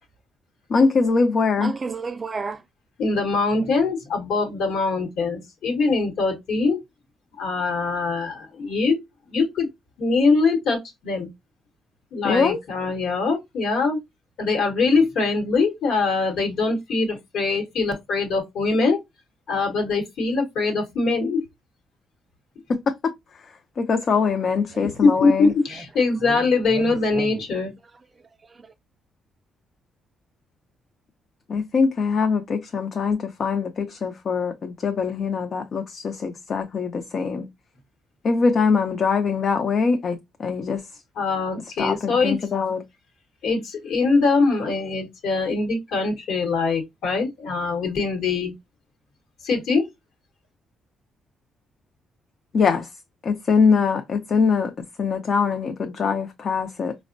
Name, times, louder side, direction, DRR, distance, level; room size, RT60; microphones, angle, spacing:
voice 1, 0.7-1.7 12.2-12.6 22.7-25.5 31.5-37.5 38.2-41.0 41.8-42.8 52.5-54.7 55.0-57.0, left 5 dB, 50° left, 0.4 m, -23 dB
voice 2, 1.6-2.6 24.7-24.9 25.4-25.5 26.2-26.4 26.7-27.4 28.2-28.7, right 4 dB, 30° right, 0.4 m, -33 dB
voice 3, 3.0-6.8 7.4-9.0 9.3-9.7 10.0-11.3 12.1-14.0 14.4-19.0 19.5-21.5 24.8-27.7 41.2-42.4 43.4-48.5 49.4-49.9, left 4 dB, 75° left, 0.9 m, -22 dB
4.2 x 2.0 x 2.5 m
cardioid pair, 90°, 0 cm